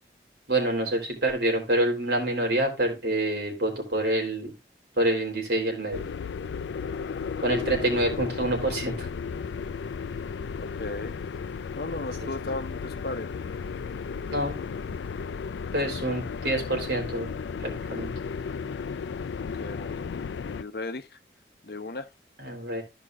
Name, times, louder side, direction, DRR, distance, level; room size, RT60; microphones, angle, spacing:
voice 1, 0.5-4.5 5.0-6.0 7.4-9.1 12.2-12.3 14.3-14.5 15.7-17.3 17.6-18.1 22.4-22.8, right 1 dB, 70° right, 3.3 m, -27 dB
sound 1, 5.9-20.6, left 5 dB, 85° left, 0.4 m, -34 dB
voice 2, 10.6-11.1 11.7-13.4 19.4-21.1 21.6-22.1, left 2 dB, 60° left, 0.8 m, -36 dB
13.5 x 5.3 x 2.3 m
head